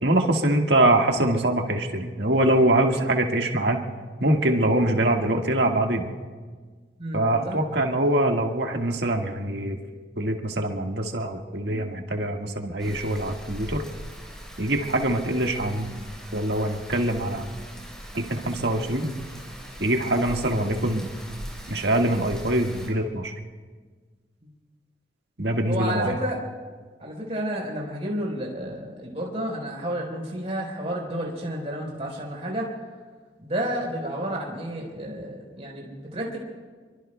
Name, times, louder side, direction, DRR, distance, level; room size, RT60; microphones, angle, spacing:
voice 1, 0.0-3.9 4.2-6.1 7.1-9.8 10.2-13.8 14.6-16.0 16.3-17.5 18.1-19.2 19.8-21.1 21.7-23.3 25.4-26.1, right 1 dB, 75° right, 2 dB, 1.7 m, -24 dB
voice 2, 7.0-7.6 25.7-26.4 27.0-32.7 33.4-36.4, right 1 dB, 35° right, -1 dB, 4.3 m, -31 dB
Rain, 12.8-22.9, equal, 5° left, 3.6 m, -41 dB
28.0 x 23.0 x 2.3 m, 1.4 s
head